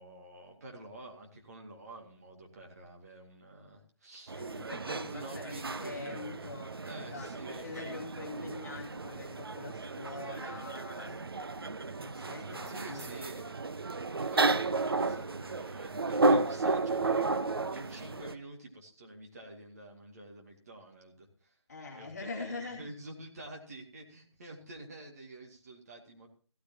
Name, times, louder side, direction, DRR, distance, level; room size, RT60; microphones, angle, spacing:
voice 1, 0.0-4.3 4.6-6.5 6.8-7.7 12.4-13.5 14.1-17.3 17.7-21.6 21.9-26.3, right 2 dB, 35° right, 0 dB, 2.3 m, -48 dB
voice 2, 4.3-11.2 12.0-13.1 21.7-22.8, left 3 dB, 35° left, -2 dB, 2.6 m, -44 dB
sound 1, 4.3-18.3, right 3 dB, 55° right, 0.7 m, -33 dB
15.5 x 13.5 x 3.0 m, 0.42 s
figure-of-eight pair, 155°, 15 cm